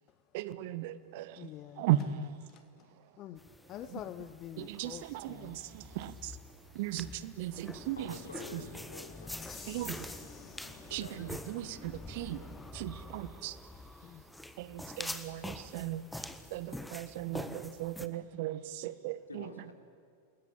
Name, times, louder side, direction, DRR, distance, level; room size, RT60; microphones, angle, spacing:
voice 1, 0.3-3.2 3.8-4.0 4.6-8.2 8.5-8.6 9.7-10.4 10.9-12.4 12.7-14.2 14.6-19.7, right 13 dB, 50° right, 15 dB, 1.1 m, -38 dB
voice 2, 1.4-1.9 2.5-5.6 7.0-7.1 14.0-14.2, left 12 dB, 35° left, 13 dB, 0.8 m, -47 dB
sound 1, 3.4-18.1, left 1 dB, 5° left, 1.4 m, -46 dB
sound 2, 7.5-12.7, left 4 dB, 20° left, 3.4 m, -51 dB
voice 3, 8.0-9.4 10.9-11.2 19.3-19.7, left 4 dB, 75° left, 5 dB, 3.2 m, -48 dB
28.5 x 21.0 x 8.8 m, 2.2 s
figure-of-eight pair, 90°, 0 cm